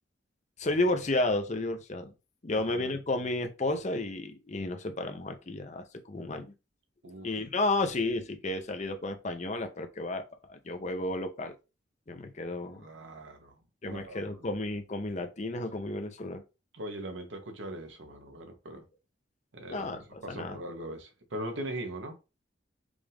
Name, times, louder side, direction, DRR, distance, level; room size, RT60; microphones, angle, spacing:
voice 1, 0.6-2.1 2.4-6.5 7.2-11.5 12.1-12.9 13.8-16.4 19.7-20.6, left 2 dB, 40° left, 0.7 m, -32 dB
voice 2, 2.5-2.9 7.0-7.3 12.6-13.6 13.9-14.5 16.7-18.8 19.5-19.9 20.2-22.1, right 1 dB, 75° right, 1.0 m, -40 dB
5.0 x 2.5 x 3.4 m
head